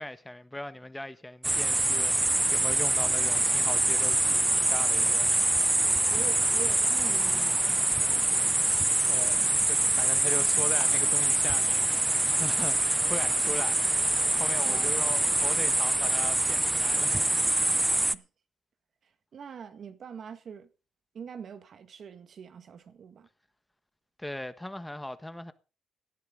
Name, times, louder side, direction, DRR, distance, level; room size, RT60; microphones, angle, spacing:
voice 1, 0.0-5.3 9.1-13.8 14.4-17.2 24.2-25.5, left 1 dB, 10° left, 1.3 m, -39 dB
sound 1, 1.4-18.1, right 2 dB, 15° right, 0.7 m, -25 dB
voice 2, 5.8-8.5 14.6-14.9 15.2-16.0 18.1-18.3 19.0-20.7 21.1-23.3, right 7 dB, 55° right, 1.7 m, -44 dB
18.0 x 12.0 x 3.9 m
cardioid pair, 90°, 0 cm